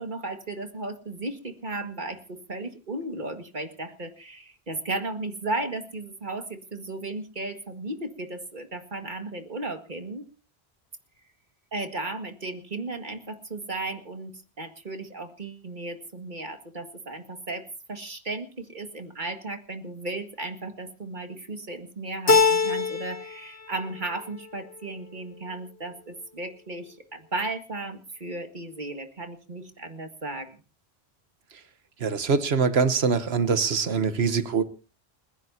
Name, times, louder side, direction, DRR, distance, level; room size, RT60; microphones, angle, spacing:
voice 1, 0.0-10.3 11.7-30.6, right 2 dB, 50° right, 6 dB, 2.0 m, -35 dB
Keyboard (musical), 22.3-23.4 23.7-24.4, left 5 dB, 80° left, 1.9 m, -23 dB
voice 2, 32.0-34.6, right 5 dB, 85° right, 11 dB, 1.3 m, -23 dB
29.5 x 11.0 x 2.8 m, 0.34 s
omnidirectional pair, 1.0 m